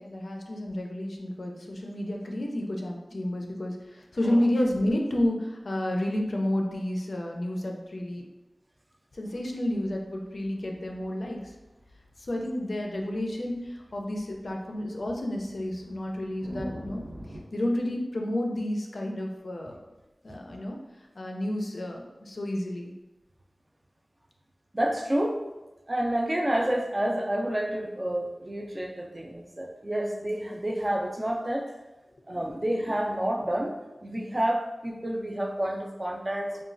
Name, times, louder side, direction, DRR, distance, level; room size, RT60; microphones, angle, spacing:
voice 1, 0.0-8.2 9.1-11.5 12.2-17.1 17.5-19.8 20.2-20.8 21.2-22.9, left 1 dB, 70° left, 1 dB, 0.4 m, -30 dB
sound 1, 9.3-17.4, equal, 75° right, 0.9 m, -46 dB
voice 2, 24.7-25.4 25.9-31.7 32.3-33.7 34.0-36.6, right 1 dB, 30° right, 1 dB, 0.3 m, -29 dB
3.0 x 2.2 x 2.5 m, 1.1 s
wide cardioid pair, 75°, 0 cm